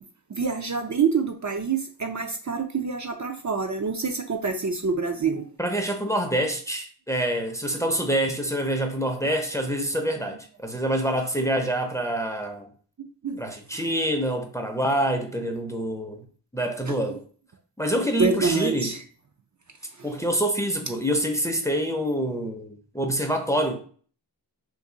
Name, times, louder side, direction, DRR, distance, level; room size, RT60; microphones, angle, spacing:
voice 1, 0.3-5.5 13.2-13.4 16.9-17.0 18.2-19.0 20.0-20.1, right 5 dB, 40° right, 0.5 m, -26 dB
voice 2, 5.6-12.7 13.4-16.2 16.5-17.2 17.8-18.9 20.0-23.8, right 1 dB, 5° left, 0.5 m, -26 dB
2.6 x 2.6 x 3.7 m
wide cardioid pair, 65°, 45 cm